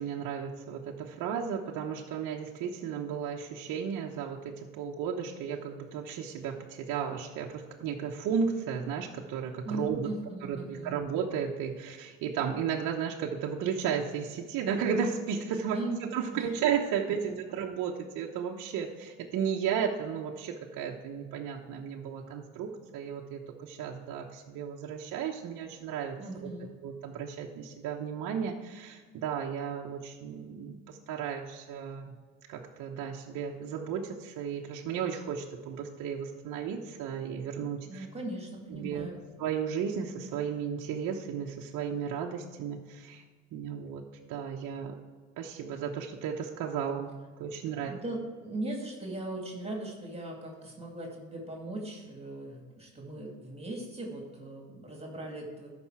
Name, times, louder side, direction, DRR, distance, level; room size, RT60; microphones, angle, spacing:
voice 1, 0.0-10.1 10.4-26.2 26.8-32.1 32.5-38.1 38.7-39.1 39.4-43.2 43.5-44.0 44.3-45.0 45.4-47.9, right 7 dB, 50° right, -1 dB, 1.0 m, -34 dB
voice 2, 9.6-11.0 15.7-16.0 26.2-26.7 37.8-39.2 47.9-55.7, right 2 dB, 15° right, 0 dB, 2.3 m, -39 dB
13.0 x 5.4 x 4.7 m, 1.5 s
supercardioid pair, 100°, 39 cm